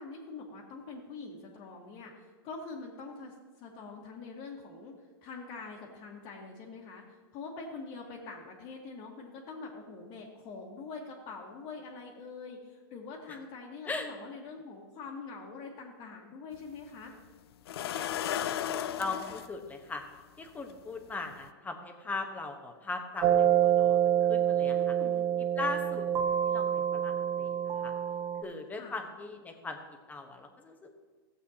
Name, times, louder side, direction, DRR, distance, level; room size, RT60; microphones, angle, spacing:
voice 1, 0.0-4.9 5.2-17.1 24.7-25.2 28.8-29.0, left 4 dB, 40° left, -5 dB, 1.6 m, -44 dB
sound 1, 16.5-16.6 17.7-19.5 20.7-20.8 21.3-21.5, left 10 dB, 80° left, 0.5 m, -34 dB
voice 2, 18.7-20.0 20.4-24.9 25.6-27.5 27.8-27.9 28.4-29.8 30.1-30.9, left 3 dB, 10° left, 4 dB, 1.1 m, -39 dB
sound 2, 23.2-28.4, right 10 dB, 30° right, 0.6 m, -27 dB
15.0 x 8.0 x 2.9 m, 1.4 s
hypercardioid pair, 130°, 13 cm